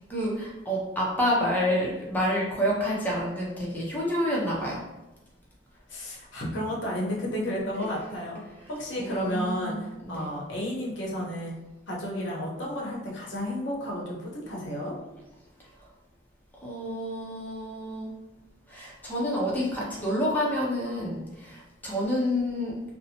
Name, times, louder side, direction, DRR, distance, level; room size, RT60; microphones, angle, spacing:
voice 1, 0.1-4.8 9.0-10.3 16.6-18.1 18.7-22.7, equal, 10° left, -5 dB, 0.5 m, -28 dB
voice 2, 5.9-8.4 8.7-11.5 11.9-14.9, equal, 90° left, -3 dB, 0.8 m, -32 dB
2.6 x 2.0 x 2.8 m, 1.0 s
head